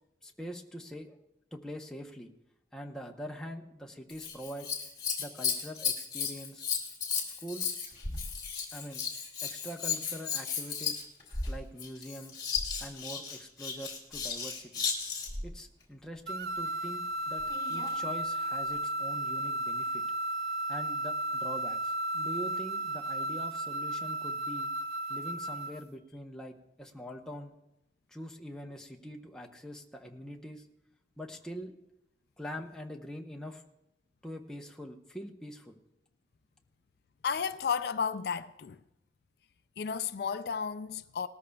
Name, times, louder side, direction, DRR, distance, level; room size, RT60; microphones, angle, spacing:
voice 1, 0.2-1.2 1.5-2.3 2.7-4.8 5.2-6.6 7.4-7.8 8.7-9.0 9.4-11.0 11.5-12.4 12.8-14.8 15.4-17.4 17.7-20.0 20.7-24.7 25.1-27.6 28.1-30.7 31.2-31.7 32.4-33.6 34.2-35.8, equal, 5° left, 0.8 m, -43 dB
Scissors, 4.1-15.5 17.4-18.0 18.7-18.8, left 6 dB, 25° left, 3.0 m, -35 dB
sound 1, 16.3-25.8, right 1 dB, 60° right, 0.7 m, -34 dB
voice 2, 37.2-38.8 39.8-41.3, left 6 dB, 60° left, 0.4 m, -33 dB
19.5 x 13.5 x 2.3 m
head